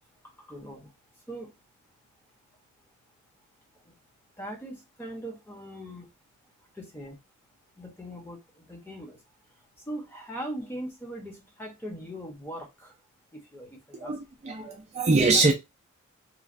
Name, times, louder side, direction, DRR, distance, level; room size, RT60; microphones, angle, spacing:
voice 1, 0.2-0.9 1.3-1.5 3.7-4.0 4.4-6.1 6.7-7.2 7.8-9.2 9.6-13.0 13.3-14.2, right 1 dB, 10° left, 0.8 m, -40 dB
voice 2, 14.0-15.5, right 3 dB, 30° right, 0.3 m, -23 dB
3.1 x 2.2 x 2.4 m
head